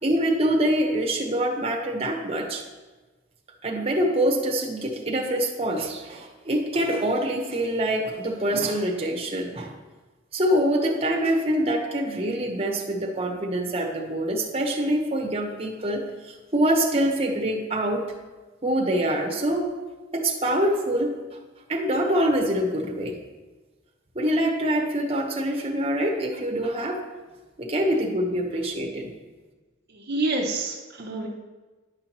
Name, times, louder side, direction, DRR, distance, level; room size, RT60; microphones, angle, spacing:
voice 1, 0.0-2.6 3.6-9.7 10.3-18.1 18.6-19.7 20.1-21.1 21.7-23.2 24.1-27.0 27.6-29.1, right 1 dB, 30° right, 1 dB, 1.0 m, -25 dB
voice 2, 29.9-31.3, right 2 dB, 55° right, 0 dB, 0.7 m, -28 dB
10.0 x 5.7 x 3.0 m, 1.2 s
head